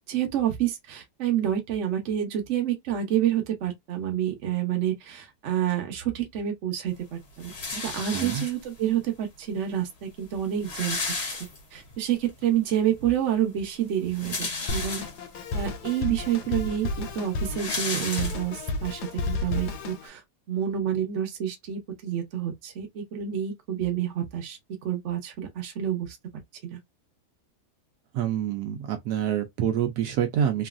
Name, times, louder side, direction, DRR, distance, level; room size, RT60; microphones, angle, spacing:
voice 1, 0.1-11.1 11.7-15.0 15.5-20.2 20.5-26.2 26.6-26.8, right 10 dB, 55° right, 1.0 m, -28 dB
sound 1, 7.4-8.9 9.7-9.8 10.0-10.1 10.4-12.0 12.4-12.5 13.9-15.4 16.0-16.1 16.4-18.8, left 3 dB, 45° left, 1.1 m, -33 dB
voice 2, 8.1-8.4 28.1-30.7, right 9 dB, 75° right, 1.1 m, -27 dB
Drum kit, 14.7-20.1, left 2 dB, 80° left, 1.1 m, -32 dB
3.0 x 2.5 x 2.4 m
omnidirectional pair, 1.8 m